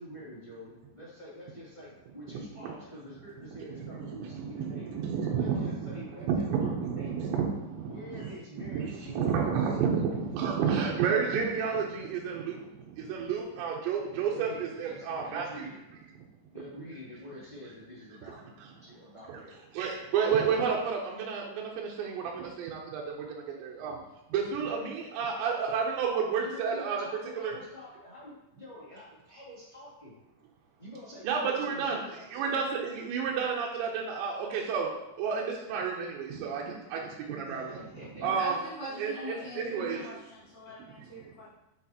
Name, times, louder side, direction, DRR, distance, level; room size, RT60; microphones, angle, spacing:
voice 1, 0.0-4.9 5.2-6.7 6.9-7.1 7.7-9.5 14.3-15.8 16.5-18.4 18.7-19.6 26.4-30.1 30.8-32.5 37.4-39.8, left 1 dB, 40° left, -12 dB, 0.6 m, -47 dB
voice 2, 3.7-8.3 8.7-15.7 19.3-19.4 19.7-24.0 24.3-27.1 27.4-27.5 31.2-32.0 32.3-34.9 35.2-37.8 38.2-38.5 39.0-40.1, right 6 dB, 80° right, -2 dB, 2.8 m, -31 dB
voice 3, 38.0-41.5, equal, 85° left, -8 dB, 1.5 m, -43 dB
6.6 x 6.2 x 2.9 m, 0.89 s
omnidirectional pair, 5.5 m